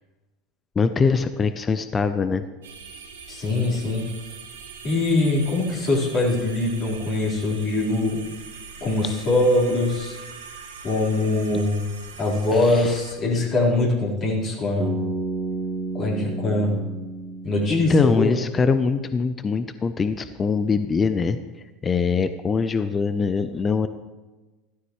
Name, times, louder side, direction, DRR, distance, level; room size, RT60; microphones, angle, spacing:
voice 1, 0.8-2.4 12.5-13.0 17.7-21.4 21.8-23.9, left 5 dB, 25° left, 11 dB, 0.6 m, -23 dB
sound 1, 2.6-13.1, right 5 dB, 80° right, 1.7 m, -42 dB
voice 2, 3.3-4.1 4.8-8.2 8.8-10.1 10.8-11.8 12.2-14.9 15.9-16.8 17.4-18.4, left 2 dB, 45° left, -6 dB, 4.2 m, -22 dB
Bass guitar, 14.8-18.8, right 3 dB, 25° right, 2.2 m, -32 dB
14.5 x 13.0 x 3.2 m, 1.2 s
hypercardioid pair, 80°, 0 cm